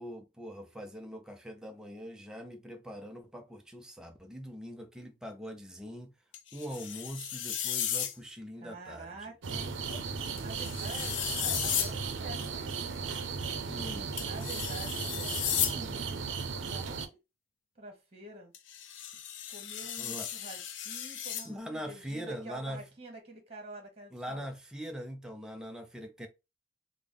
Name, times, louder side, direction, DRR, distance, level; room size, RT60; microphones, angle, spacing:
voice 1, 0.0-6.1 6.5-9.2 13.7-14.1 19.0-19.1 20.0-20.3 21.4-22.8 24.1-26.3, equal, 5° right, 0.4 m, -42 dB
sound 1, 6.3-8.1 10.4-11.9 14.2-15.8 18.5-21.5, left 10 dB, 85° left, 0.5 m, -34 dB
voice 2, 8.5-13.0 13.7-16.3 16.5-17.2 17.7-18.5 19.5-24.5, right 2 dB, 35° right, 1.2 m, -47 dB
sound 2, 9.4-17.1, right 5 dB, 80° right, 0.5 m, -36 dB
3.4 x 2.0 x 3.5 m
head